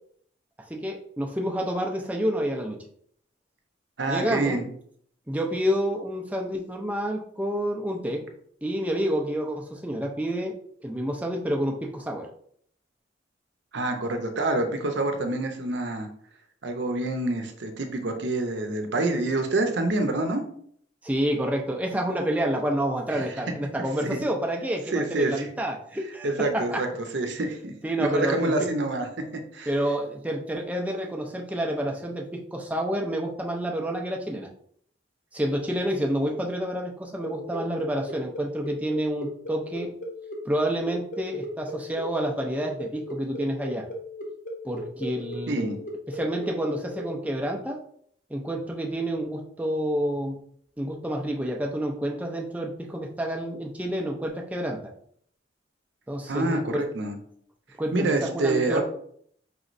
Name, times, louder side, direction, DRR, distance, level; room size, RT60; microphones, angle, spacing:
voice 1, 0.7-2.8 4.1-4.6 5.3-8.2 8.6-10.5 10.8-12.3 21.0-26.8 27.8-28.7 29.7-34.5 35.3-39.9 40.4-43.9 44.6-45.7 46.1-47.8 48.3-50.3 50.8-54.8 56.1-56.8 57.8-58.8, equal, 10° right, 1 dB, 0.5 m, -29 dB
voice 2, 4.0-4.7 13.7-16.1 16.6-20.4 23.1-23.3 24.0-24.2 24.9-25.5 26.2-26.9 27.1-27.7 28.0-29.1 29.5-29.7 37.3-37.4 45.5-45.8 56.3-57.2 57.9-58.8, right 2 dB, 75° right, 5 dB, 0.7 m, -27 dB
sound 1, 37.2-47.0, equal, 45° left, 0.7 m, -37 dB
4.8 x 3.1 x 2.6 m, 0.64 s
head